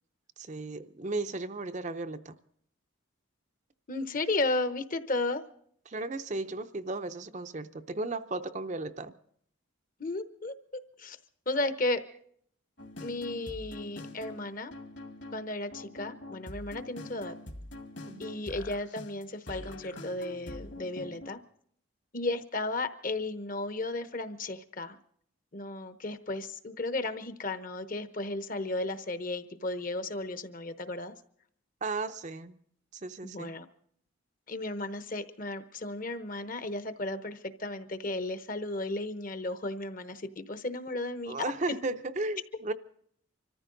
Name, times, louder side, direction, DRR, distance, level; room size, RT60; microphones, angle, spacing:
voice 1, 0.4-2.3 5.9-9.1 18.1-18.4 31.8-32.5 32.9-33.6 41.3-42.7, right 2 dB, 35° right, 0.6 m, -35 dB
voice 2, 3.9-5.4 10.0-10.5 11.0-11.2 11.5-12.0 13.0-14.7 15.3-17.3 18.2-21.4 22.1-25.0 25.5-31.1 33.2-33.6 34.5-41.5, left 2 dB, 40° left, 1.0 m, -34 dB
sound 1, 12.8-21.3, left 1 dB, 55° left, 2.0 m, -44 dB
25.5 x 14.5 x 3.9 m
head